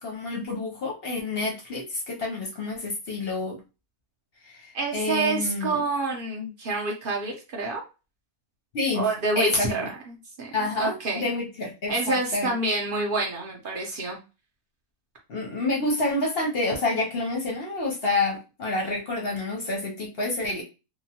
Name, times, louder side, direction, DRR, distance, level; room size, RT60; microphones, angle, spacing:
voice 1, 0.0-3.6 4.4-5.8 8.7-9.1 9.4-9.9 10.5-12.5 15.3-20.6, left 2 dB, 55° left, -1 dB, 0.7 m, -28 dB
voice 2, 4.7-7.8 8.9-11.2 11.9-14.2, right 3 dB, 55° right, 0 dB, 0.6 m, -28 dB
2.8 x 2.1 x 2.8 m, 0.30 s
omnidirectional pair, 1.6 m